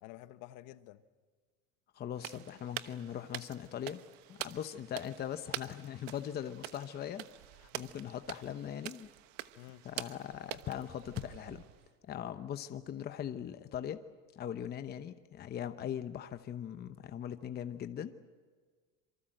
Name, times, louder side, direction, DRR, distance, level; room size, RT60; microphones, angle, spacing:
voice 1, 0.0-1.0 9.6-9.9, left 15 dB, 50° left, 1.1 m, -50 dB
voice 2, 1.9-4.0 4.3-7.3 7.6-9.1 9.8-11.6 12.1-14.0 14.3-18.1, left 10 dB, 25° left, 0.9 m, -40 dB
sound 1, 2.2-11.9, right 16 dB, 65° right, 1.2 m, -46 dB
27.0 x 24.5 x 7.8 m
supercardioid pair, 145°, 40 cm